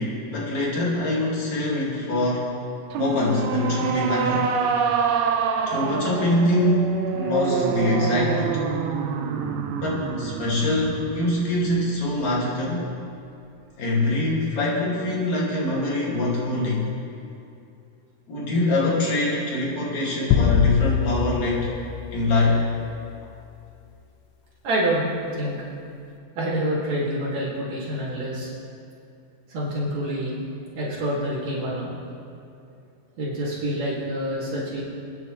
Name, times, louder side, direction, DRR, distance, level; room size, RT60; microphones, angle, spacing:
voice 1, 0.0-2.6 3.0-4.5 5.7-8.6 9.7-12.9 13.8-16.9 18.3-21.7 22.1-22.6, left 2 dB, 60° left, -5 dB, 3.7 m, -24 dB
sound 1, 2.9-12.3, right 6 dB, 75° right, 1.6 m, -27 dB
sound 2, 20.3-22.9, left 8 dB, 80° left, 2.1 m, -24 dB
voice 2, 24.6-25.6 26.4-28.5 29.5-30.4 30.7-31.9 33.2-34.8, right 1 dB, 55° right, -8 dB, 3.7 m, -27 dB
26.5 x 10.0 x 3.3 m, 2.5 s
omnidirectional pair, 3.8 m